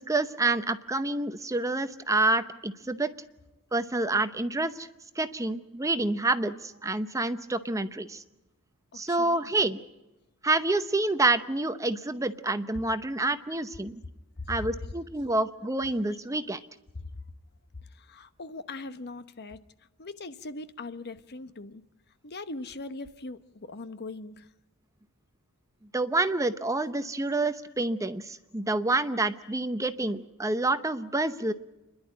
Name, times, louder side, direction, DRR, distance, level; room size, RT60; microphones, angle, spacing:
voice 1, 0.0-3.1 3.7-4.9 5.2-8.2 8.9-9.8 10.4-13.9 14.5-16.6 25.9-31.5, right 2 dB, 15° right, 10 dB, 0.8 m, -28 dB
voice 2, 8.9-9.5 14.4-14.9 16.1-16.2 16.9-17.1 17.8-24.5 26.9-27.1 27.6-27.7 29.1-29.5, left 3 dB, 50° left, 12 dB, 1.0 m, -41 dB
29.5 x 11.5 x 9.9 m, 1.0 s
head